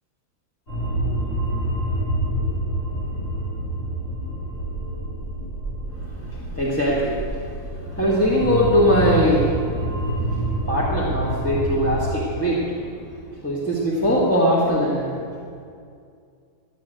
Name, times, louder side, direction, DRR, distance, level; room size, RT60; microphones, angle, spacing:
sound 1, 0.7-12.2, right 1 dB, 45° left, 5.0 m, -27 dB
voice 1, 5.9-9.6 10.2-10.4 10.7-12.8 13.4-15.3, equal, 10° left, -7 dB, 1.5 m, -21 dB
13.5 x 9.1 x 7.7 m, 2.3 s
omnidirectional pair, 2.2 m